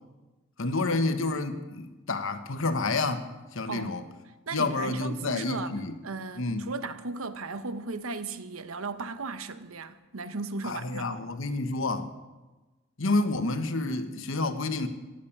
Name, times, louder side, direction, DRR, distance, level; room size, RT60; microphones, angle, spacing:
voice 1, 0.6-4.0 4.5-5.9 6.3-6.6 10.6-12.1 13.0-14.9, left 3 dB, 65° left, 1.2 m, -29 dB
voice 2, 4.5-5.8 6.0-11.1, right 3 dB, 80° right, 1.0 m, -36 dB
15.5 x 10.5 x 7.3 m
head